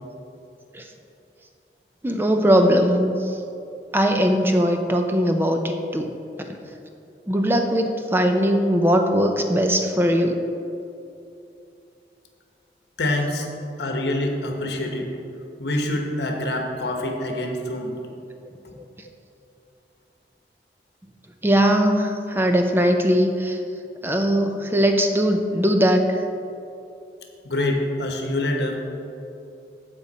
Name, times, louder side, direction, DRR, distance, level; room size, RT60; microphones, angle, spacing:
voice 1, 2.0-3.4 3.9-6.1 7.3-10.5 18.7-18.8 21.4-23.6 24.0-26.2, equal, 10° right, 4 dB, 0.5 m, -20 dB
voice 2, 13.0-13.5 13.8-15.1 15.6-17.9 27.4-28.8, left 1 dB, 75° left, 2 dB, 1.2 m, -25 dB
15.0 x 5.3 x 4.2 m, 2.7 s
head